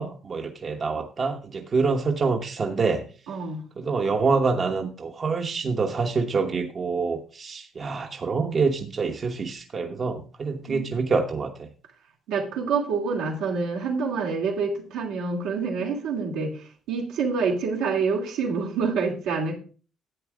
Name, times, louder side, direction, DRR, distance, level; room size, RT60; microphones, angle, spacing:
voice 1, 0.0-3.0 3.8-11.7, right 4 dB, 45° right, 3 dB, 1.1 m, -26 dB
voice 2, 3.3-3.6 10.7-10.9 12.3-19.6, right 5 dB, 85° right, -2 dB, 2.8 m, -27 dB
11.5 x 8.1 x 3.7 m, 0.38 s
supercardioid pair, 70°, 0 cm